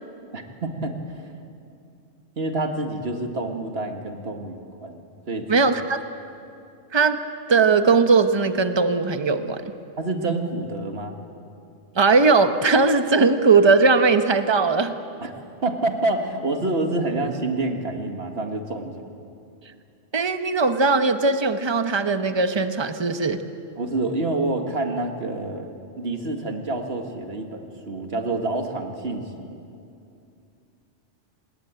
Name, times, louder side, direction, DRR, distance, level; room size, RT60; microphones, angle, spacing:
voice 1, 0.3-1.3 2.4-5.6 10.0-11.2 15.2-18.9 23.8-25.7 26.0-29.6, right 2 dB, 55° right, 4 dB, 2.2 m, -28 dB
voice 2, 5.5-6.0 6.9-7.2 7.5-9.7 11.9-14.9 20.1-23.4, right 4 dB, 25° right, 8 dB, 1.0 m, -19 dB
26.0 x 20.5 x 9.0 m, 2.6 s
omnidirectional pair, 1.3 m